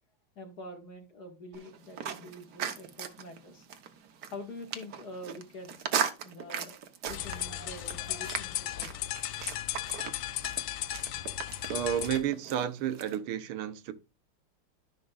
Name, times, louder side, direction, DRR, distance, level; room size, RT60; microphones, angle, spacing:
voice 1, 0.4-3.7 4.2-5.8 6.2-6.8 7.0-9.1, left 1 dB, 50° left, 2.2 m, -45 dB
sound 1, 1.5-13.2, right 8 dB, 60° right, 1.3 m, -38 dB
sound 2, 7.1-12.2, left 13 dB, 85° left, 1.6 m, -36 dB
voice 2, 11.7-13.9, right 10 dB, 80° right, 1.7 m, -31 dB
13.5 x 6.0 x 2.4 m
omnidirectional pair, 2.4 m